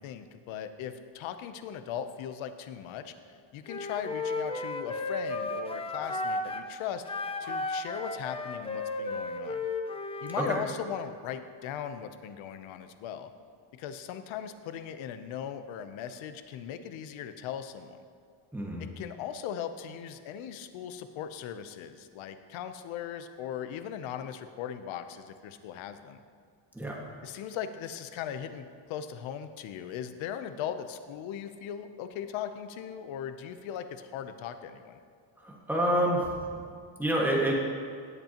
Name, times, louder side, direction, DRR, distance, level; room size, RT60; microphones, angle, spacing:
voice 1, 0.0-7.0 7.4-9.7 10.2-13.3 13.7-18.0 19.0-26.2 27.2-35.0, left 9 dB, 75° left, 10 dB, 0.9 m, -38 dB
Wind instrument woodwind instrument, 3.7-6.7 7.1-10.5, left 3 dB, 15° left, 0.5 m, -34 dB
voice 2, 18.5-18.9 26.7-27.0 35.4-36.3 36.5-36.6 37.0-37.5, right 1 dB, 5° right, -3 dB, 1.8 m, -27 dB
17.5 x 8.2 x 3.0 m, 2.2 s
cardioid pair, 140°, 47 cm